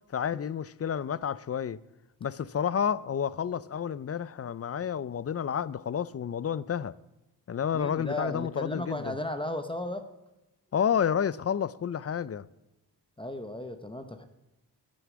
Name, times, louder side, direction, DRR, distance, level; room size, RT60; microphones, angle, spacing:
voice 1, 0.1-1.8 2.2-7.0 7.5-9.2 10.7-12.4, left 8 dB, 35° left, 0.4 m, -30 dB
voice 2, 7.7-10.0 13.2-14.2, left 1 dB, 10° left, 0.9 m, -35 dB
12.5 x 6.7 x 8.6 m
cardioid pair, 80°, 41 cm